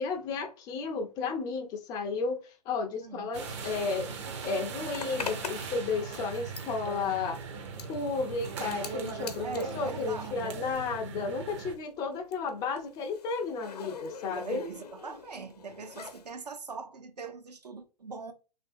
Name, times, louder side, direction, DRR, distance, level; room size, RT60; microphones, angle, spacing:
voice 1, 0.0-4.1 4.4-7.4 7.9-14.6, left 4 dB, 20° left, 0.3 m, -33 dB
sound 1, 3.3-11.7, right 5 dB, 45° right, 0.6 m, -39 dB
Zipper (clothing), 4.9-11.1 11.3-16.3, left 6 dB, 70° left, 0.7 m, -44 dB
voice 2, 9.4-10.8 14.3-18.3, right 4 dB, 80° right, 0.6 m, -42 dB
3.2 x 2.5 x 2.5 m
figure-of-eight pair, 110°, 21 cm